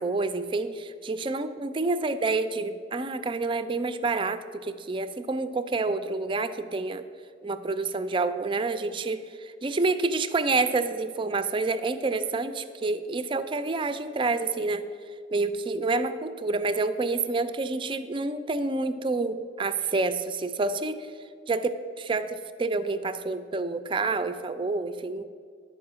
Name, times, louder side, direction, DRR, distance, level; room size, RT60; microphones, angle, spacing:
voice 1, 0.0-7.0 7.4-14.8 15.3-21.1 21.5-25.2, right 3 dB, 25° right, 11 dB, 0.4 m, -28 dB
10.5 x 4.9 x 6.8 m, 2.1 s
head